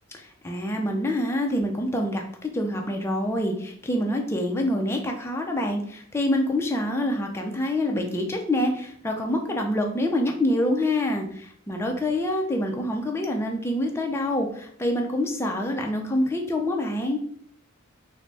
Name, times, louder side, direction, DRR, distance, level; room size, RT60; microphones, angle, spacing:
voice 1, 0.1-17.2, left 1 dB, 10° left, 2 dB, 0.4 m, -26 dB
3.9 x 2.0 x 3.3 m, 0.64 s
head